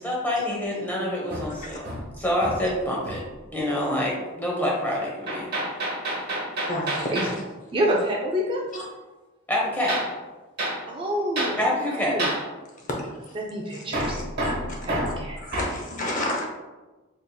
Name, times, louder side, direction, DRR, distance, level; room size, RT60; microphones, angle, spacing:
voice 1, 0.0-1.8 2.2-3.2 3.5-5.5 9.5-10.0 11.6-12.3, left 1 dB, 10° left, -3 dB, 0.9 m, -26 dB
Hammer, 1.3-2.7 3.0-3.4 5.3-7.4 9.9-10.1 10.6-10.8 11.4-11.6 12.2-12.4 13.9-15.8, right 1 dB, 50° right, 1.2 m, -29 dB
voice 2, 6.7-7.3 8.7-8.8 12.8-13.4 13.7-14.5 15.1-15.2 15.4-16.5, left 1 dB, 40° left, -1 dB, 0.6 m, -31 dB
voice 3, 7.7-8.6 10.9-12.3 13.3-14.2 14.8-15.4, equal, 25° right, -1 dB, 0.4 m, -27 dB
4.1 x 3.4 x 2.2 m, 1.2 s
head